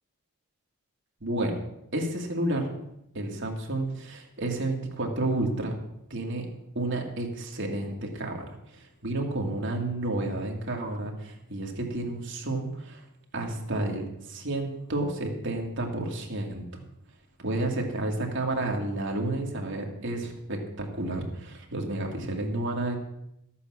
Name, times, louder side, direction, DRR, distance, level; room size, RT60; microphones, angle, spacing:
voice 1, 1.2-1.5 1.9-2.7 3.1-5.7 6.1-6.5 6.7-13.0 13.3-16.8 17.4-23.0, right 2 dB, 55° right, 1 dB, 2.3 m, -31 dB
13.0 x 8.4 x 6.4 m, 0.82 s
head